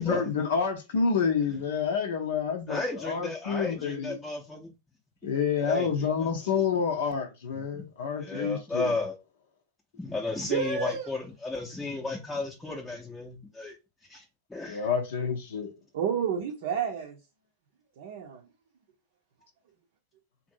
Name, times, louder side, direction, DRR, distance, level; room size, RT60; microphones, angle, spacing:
voice 1, 0.0-4.2 5.2-8.9 14.6-15.7, left 6 dB, 60° left, 0.5 m, -28 dB
voice 2, 2.7-4.7 5.6-5.9 6.2-6.3 7.7-7.9 8.2-9.1 10.0-13.8 14.1-14.2 14.5-14.8, left 2 dB, 5° left, 0.6 m, -33 dB
voice 3, 10.5-11.1 15.9-17.2 18.0-18.4, right 6 dB, 55° right, 0.6 m, -30 dB
2.6 x 2.6 x 2.6 m
figure-of-eight pair, 90°, 0 cm